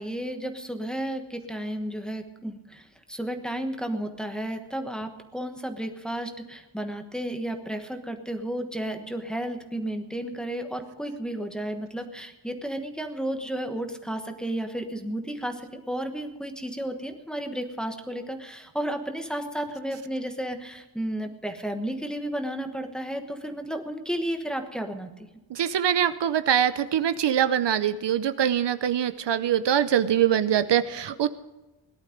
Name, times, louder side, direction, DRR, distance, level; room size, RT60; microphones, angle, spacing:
voice 1, 0.0-25.3, right 1 dB, ahead, 5 dB, 1.2 m, -33 dB
voice 2, 25.5-31.3, right 9 dB, 65° right, 12 dB, 0.7 m, -23 dB
18.0 x 11.5 x 5.1 m, 1.1 s
wide cardioid pair, 160°, 45 cm